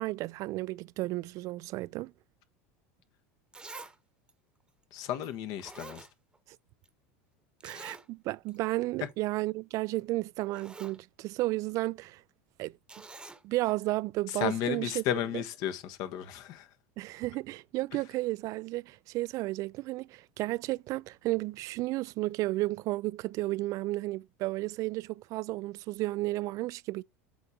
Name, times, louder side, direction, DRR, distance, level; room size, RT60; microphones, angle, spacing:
voice 1, 0.0-2.1 7.6-12.2 12.6-12.8 13.4-15.0 17.0-27.0, right 19 dB, 50° right, 0.3 m, -33 dB
Zipper (clothing), 3.0-3.1 3.5-4.0 4.3-4.4 5.2-5.3 5.6-6.6 6.8-6.9 7.6-8.1 8.5-8.6 8.9-9.1 10.0-10.1 10.4-11.0 12.9-13.4 14.3-14.4, right 3 dB, 10° right, 1.0 m, -47 dB
voice 2, 4.9-6.1 7.7-7.8 14.3-16.7, left 10 dB, 60° left, 1.3 m, -33 dB
7.9 x 3.6 x 4.3 m
supercardioid pair, 105°, 7 cm